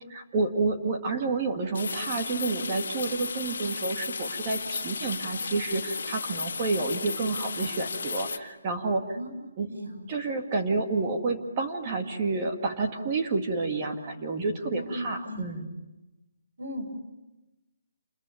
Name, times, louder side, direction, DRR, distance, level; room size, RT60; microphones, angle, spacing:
voice 1, 0.1-9.0 9.6-9.7 10.1-15.8, right 3 dB, 20° right, 4 dB, 2.1 m, -29 dB
sound 1, 1.7-8.4, left 5 dB, 65° left, 2.0 m, -34 dB
voice 2, 9.1-10.0 14.7-15.5 16.6-16.8, equal, 80° right, 5 dB, 7.2 m, -37 dB
28.5 x 21.5 x 9.3 m, 1.0 s
hypercardioid pair, 175°, 0 cm